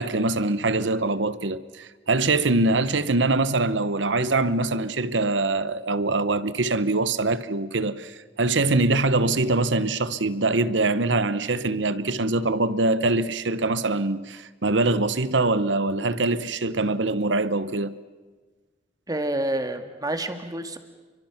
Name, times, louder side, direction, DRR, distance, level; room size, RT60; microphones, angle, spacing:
voice 1, 0.0-17.9, right 2 dB, 80° right, 1.0 m, -23 dB
voice 2, 19.1-20.8, right 1 dB, 20° right, 1.8 m, -28 dB
29.5 x 24.0 x 5.9 m
head